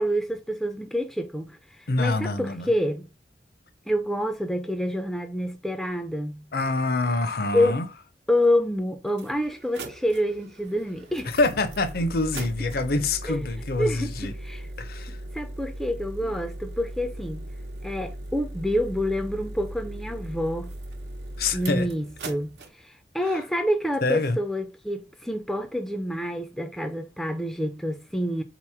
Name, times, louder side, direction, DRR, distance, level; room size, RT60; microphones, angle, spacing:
voice 1, 0.0-3.1 3.9-6.5 7.5-7.8 8.3-11.3 13.3-13.4 13.8-14.1 14.4-14.7 15.3-17.5 17.8-20.7 21.5-28.4, equal, ahead, 0.3 m, -27 dB
voice 2, 1.9-2.7 6.5-7.9 11.3-14.3 14.8-15.2 16.2-16.3 21.4-21.9 23.2-23.4 24.0-24.4, left 2 dB, 60° left, 0.6 m, -26 dB
sound 1, 8.4-8.5 9.1-22.7, right 1 dB, 75° right, 0.8 m, -38 dB
3.7 x 3.0 x 4.7 m
head